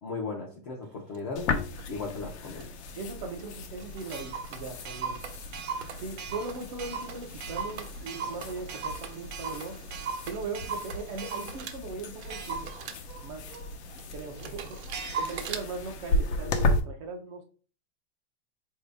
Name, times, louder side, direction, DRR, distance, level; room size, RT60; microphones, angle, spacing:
voice 1, 0.0-1.5 1.9-2.7, left 4 dB, 30° left, -1 dB, 0.5 m, -36 dB
Clock, 1.1-1.2 1.8-2.0 2.6-2.7 2.9-3.0 3.4-3.5 3.8-11.8 12.2-15.6, right 5 dB, 80° right, 0.9 m, -38 dB
sound 1, 1.4-16.8, left 2 dB, 90° left, 0.8 m, -35 dB
voice 2, 3.0-5.2 6.0-9.8 10.2-12.7 13.2-13.5 14.1-14.8 15.2-17.4, right 4 dB, 30° right, 3 dB, 0.4 m, -39 dB
4.6 x 2.7 x 3.4 m, 0.38 s
supercardioid pair, 180°, 32 cm